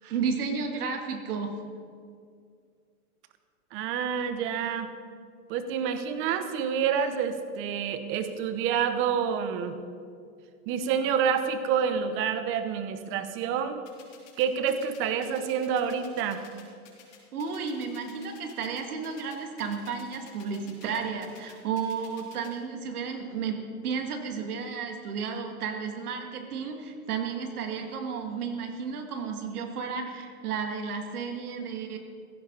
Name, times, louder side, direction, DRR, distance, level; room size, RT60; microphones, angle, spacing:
voice 1, 0.0-1.5 17.3-23.6 23.8-32.0, right 5 dB, 75° right, 4 dB, 2.3 m, -33 dB
voice 2, 3.7-4.9 5.5-9.8 10.7-13.8 14.4-16.4, right 7 dB, 25° right, 9 dB, 1.0 m, -28 dB
sound 1, 13.9-22.5, left 10 dB, 55° left, 4.5 m, -52 dB
16.0 x 14.5 x 4.1 m, 2.2 s
hypercardioid pair, 150°, 45 cm